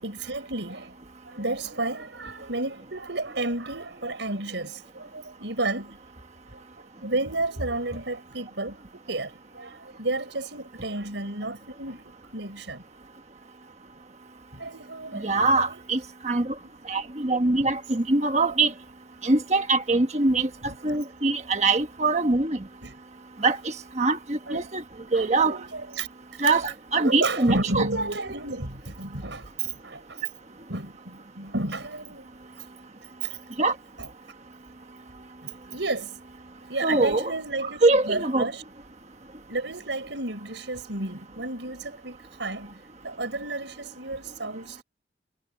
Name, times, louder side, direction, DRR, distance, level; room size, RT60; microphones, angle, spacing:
voice 1, 0.0-6.0 6.5-6.6 7.0-8.8 9.1-12.8 14.5-15.8 16.6-16.7 20.6-21.0 22.8-23.0 24.5-24.7 25.1-26.1 26.4-26.5 27.0-30.2 30.7-32.3 33.2-33.4 34.0-34.1 35.4-36.2 36.7-38.6 39.5-44.8, right 2 dB, 80° right, 5.1 m, -32 dB
voice 2, 15.2-16.5 16.9-18.7 19.2-20.5 20.8-22.6 23.4-24.8 25.1-25.6 26.4-27.9 33.6-33.7 36.8-37.3 37.8-38.5, right 3 dB, 35° right, 1.3 m, -23 dB
head